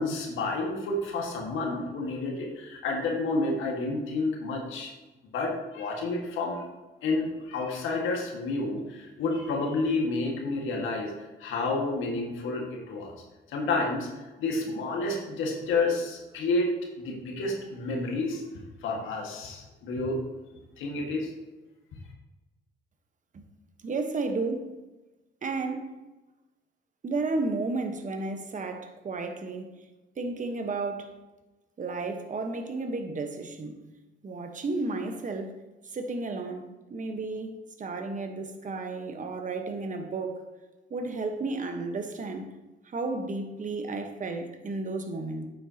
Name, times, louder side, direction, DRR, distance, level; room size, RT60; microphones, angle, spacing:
voice 1, 0.0-4.9 5.3-6.6 7.0-11.1 11.4-13.1 13.5-16.7 17.0-18.4 18.8-20.2 20.8-21.3, left 3 dB, 85° left, 0 dB, 1.7 m, -30 dB
voice 2, 23.8-24.7 25.4-26.0 27.0-29.7 30.2-31.2 31.8-33.8 34.2-35.6 35.9-40.4 40.9-42.5 42.8-45.5, right 3 dB, 40° right, 6 dB, 1.2 m, -33 dB
9.2 x 7.8 x 2.9 m, 1.1 s
cardioid pair, 90°, 20 cm